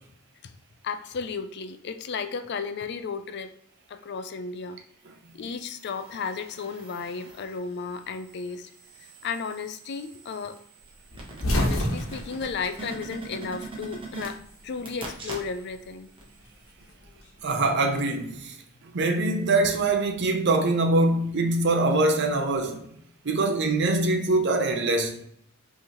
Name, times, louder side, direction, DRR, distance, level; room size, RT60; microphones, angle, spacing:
voice 1, 0.8-3.5 3.9-4.8 5.3-8.7 9.0-10.6 11.5-16.1, left 5 dB, 50° left, 0.4 m, -34 dB
sound 1, 5.6-7.6 8.1-15.8 16.2-16.3, right 3 dB, 25° right, 1.0 m, -43 dB
sound 2, 11.1-13.6 13.9-15.0 16.2-17.7, left 1 dB, 80° left, 1.2 m, -29 dB
voice 2, 17.4-18.6 18.8-22.9 23.2-25.2, right 2 dB, 55° right, 0.6 m, -23 dB
5.4 x 3.2 x 2.9 m
head